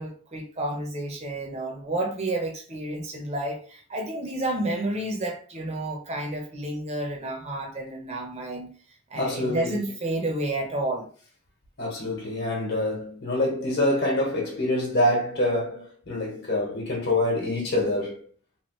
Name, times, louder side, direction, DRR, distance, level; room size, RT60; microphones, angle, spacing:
voice 1, 0.0-8.7 9.1-11.1, right 1 dB, 30° right, 0.7 m, -30 dB
voice 2, 9.1-9.8 11.8-18.2, left 1 dB, 55° left, 1.1 m, -26 dB
3.1 x 2.4 x 3.0 m
head